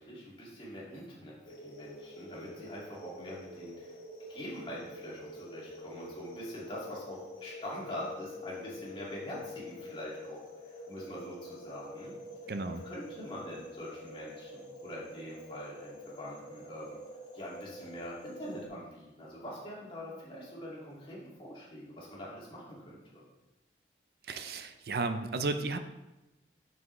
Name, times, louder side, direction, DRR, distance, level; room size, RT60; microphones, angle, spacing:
voice 1, 0.0-3.9 4.3-10.4 10.9-12.1 12.4-17.0 17.3-23.2, equal, 30° left, -6 dB, 2.0 m, -44 dB
sound 1, 1.4-18.7, left 1 dB, 45° left, 1.2 m, -47 dB
voice 2, 12.5-12.8 24.3-25.8, right 3 dB, 60° right, 8 dB, 0.5 m, -33 dB
7.2 x 6.1 x 3.1 m, 1.0 s
head